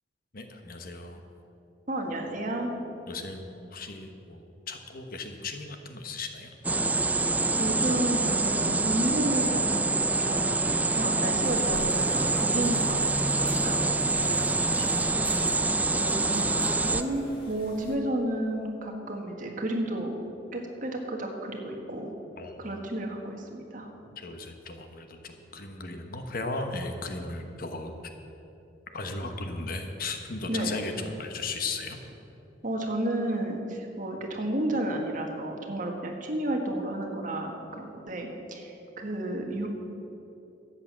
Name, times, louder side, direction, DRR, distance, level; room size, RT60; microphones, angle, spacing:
voice 1, 0.3-1.2 3.1-6.5 14.2-15.1 22.4-22.6 24.2-27.9 28.9-32.0, left 3 dB, 50° left, 6 dB, 1.1 m, -36 dB
voice 2, 1.9-2.7 7.6-14.0 15.8-20.2 20.5-22.1 22.6-23.9 30.5-30.7 32.6-39.7, right 1 dB, 45° right, 2 dB, 1.6 m, -32 dB
sound 1, 6.6-17.0, right 3 dB, 10° right, 0.3 m, -26 dB
sound 2, 11.4-17.9, left 1 dB, 30° left, 3.5 m, -42 dB
13.0 x 8.6 x 7.3 m, 2.9 s
head